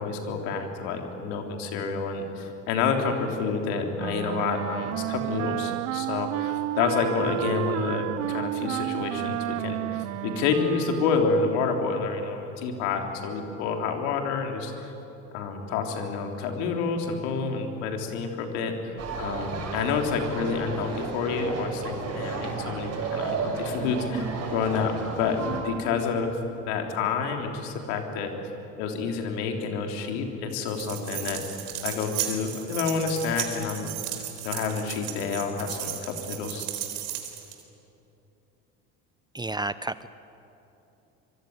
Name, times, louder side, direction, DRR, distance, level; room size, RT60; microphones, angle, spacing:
voice 1, 0.0-14.9 15.3-18.9 19.2-25.4 25.6-26.3 26.6-28.3 28.8-31.4 31.8-33.9 34.4-36.7, left 5 dB, 85° left, 3 dB, 3.6 m, -29 dB
Wind instrument woodwind instrument, 4.0-11.5, right 16 dB, 65° right, 0.7 m, -31 dB
sound 1, 19.0-25.6, right 4 dB, 50° right, 6.6 m, -33 dB
sound 2, 30.7-37.6, right 12 dB, 90° right, 3.9 m, -35 dB
voice 2, 39.3-40.1, right 2 dB, 15° right, 14 dB, 0.8 m, -31 dB
24.5 x 23.5 x 9.6 m, 3.0 s
supercardioid pair, 90°, 32 cm